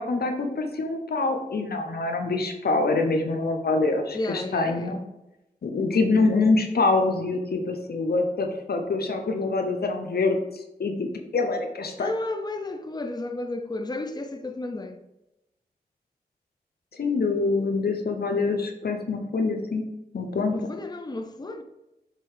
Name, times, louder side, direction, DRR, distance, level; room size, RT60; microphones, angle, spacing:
voice 1, 0.0-5.0 5.6-10.4 10.8-11.1 11.3-12.1 16.9-19.8 20.1-20.5, left 3 dB, 75° left, 0.9 m, -25 dB
voice 2, 4.1-5.0 12.0-15.0 20.5-21.6, left 2 dB, 25° left, 0.7 m, -32 dB
7.6 x 3.0 x 4.9 m
cardioid pair, 40°, 16 cm